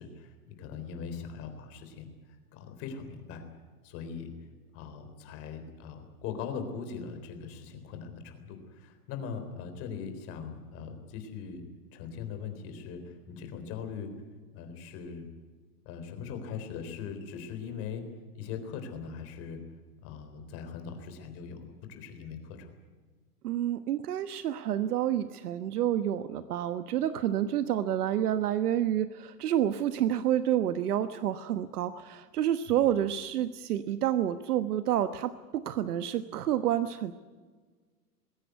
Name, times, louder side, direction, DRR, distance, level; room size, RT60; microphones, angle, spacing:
voice 1, 0.0-2.1 2.5-3.4 3.8-4.3 4.7-11.6 11.9-14.1 14.5-15.2 15.8-18.0 18.3-19.6 20.0-22.7 32.7-32.8, left 6 dB, 30° left, 7 dB, 3.8 m, -40 dB
voice 2, 23.4-37.1, right 11 dB, 70° right, 10 dB, 1.3 m, -29 dB
21.0 x 17.5 x 9.5 m, 1.4 s
supercardioid pair, 165°, 47 cm